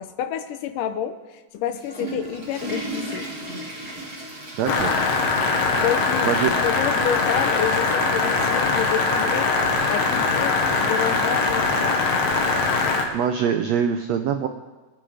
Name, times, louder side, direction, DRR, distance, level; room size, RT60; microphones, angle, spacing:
voice 1, 0.0-3.3 5.8-6.3 6.6-9.5 9.9-12.0, left 9 dB, 75° left, 10 dB, 2.3 m, -29 dB
Water / Toilet flush, 1.5-6.5 6.8-6.9 7.7-7.8 9.1-9.2, right 1 dB, 25° right, 3.6 m, -35 dB
voice 2, 4.6-4.9 6.2-6.5 13.1-14.5, right 8 dB, 90° right, 7 dB, 1.5 m, -23 dB
sound 1, 4.7-13.0, left 3 dB, 50° left, 2.2 m, -22 dB
25.5 x 9.8 x 5.0 m, 1.2 s
omnidirectional pair, 4.0 m